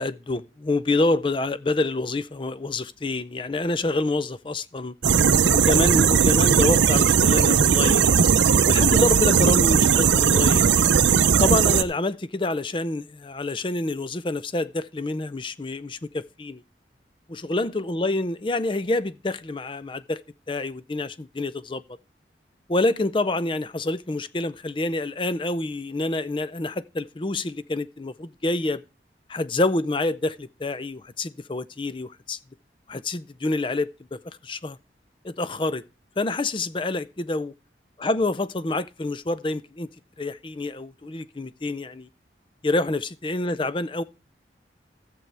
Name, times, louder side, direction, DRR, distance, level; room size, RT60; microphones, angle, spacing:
voice 1, 0.0-4.9 5.5-8.1 8.7-10.7 11.4-16.6 17.3-20.2 20.5-21.8 22.7-28.8 29.3-32.4 32.9-34.8 35.2-35.8 36.2-37.5 38.0-39.9 40.2-42.1 42.6-44.0, left 2 dB, 25° left, 0.5 m, -27 dB
sound 1, 5.0-11.8, right 6 dB, 80° right, 0.6 m, -18 dB
13.5 x 7.7 x 3.3 m
head